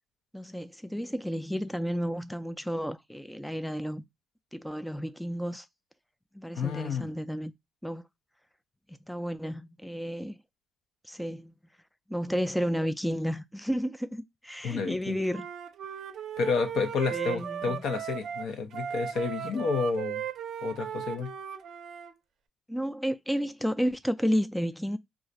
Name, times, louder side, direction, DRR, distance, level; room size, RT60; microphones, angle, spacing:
voice 1, 0.3-4.0 4.5-5.7 6.3-7.5 7.8-8.1 8.9-10.4 11.0-11.5 12.1-15.5 17.1-17.8 22.7-25.0, equal, 5° left, 0.3 m, -32 dB
voice 2, 6.5-7.1 14.6-15.2 16.4-20.2 20.6-21.3, left 5 dB, 75° left, 0.6 m, -30 dB
Wind instrument woodwind instrument, 15.3-22.1, right 9 dB, 70° right, 0.5 m, -37 dB
2.5 x 2.3 x 4.0 m
cardioid pair, 90°, 0 cm